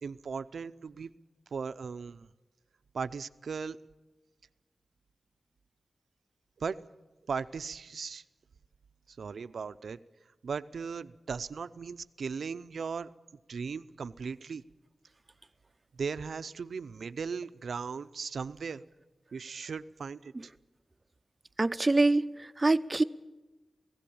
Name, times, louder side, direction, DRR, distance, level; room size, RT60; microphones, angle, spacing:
voice 1, 0.0-1.1 1.5-2.3 2.9-3.8 6.6-6.8 7.3-8.2 9.2-10.0 10.4-13.1 13.5-14.6 15.9-18.8 19.3-20.3, right 5 dB, 85° right, 13 dB, 0.5 m, -37 dB
voice 2, 21.6-23.0, right 2 dB, 25° right, 12 dB, 0.6 m, -25 dB
18.0 x 16.5 x 8.6 m, 1.2 s
wide cardioid pair, 90°, 0 cm